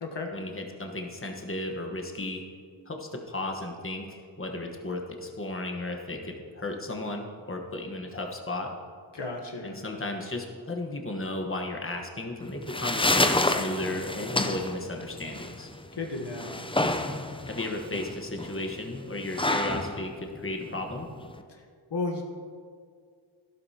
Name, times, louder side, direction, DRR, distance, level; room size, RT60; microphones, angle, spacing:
voice 1, 0.3-2.4 2.9-8.7 9.6-15.7 17.4-21.1, left 2 dB, 30° left, 2 dB, 1.3 m, -34 dB
voice 2, 9.1-9.8 16.0-16.6 21.9-22.2, left 3 dB, 65° left, 2 dB, 1.2 m, -33 dB
sound 1, 12.4-21.4, left 2 dB, 10° left, 0.6 m, -29 dB
12.0 x 11.5 x 2.9 m, 2.1 s
wide cardioid pair, 40°, 45 cm